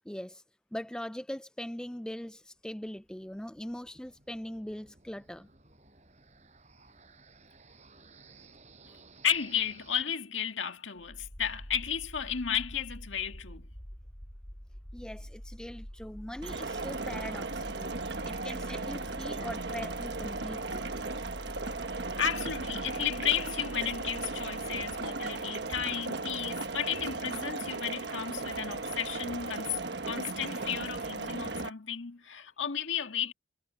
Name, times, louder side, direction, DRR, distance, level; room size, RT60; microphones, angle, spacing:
voice 1, 0.1-0.4 0.7-5.5 14.9-20.9, left 1 dB, 5° left, 0.3 m, -41 dB
sound 1, 2.7-10.0, right 4 dB, 35° right, 5.9 m, -58 dB
voice 2, 9.2-13.7 22.2-33.3, left 8 dB, 80° left, 1.8 m, -33 dB
sound 2, 11.0-25.8, equal, 25° left, 3.7 m, -46 dB
sound 3, 16.4-31.7, right 3 dB, 60° right, 1.3 m, -36 dB
head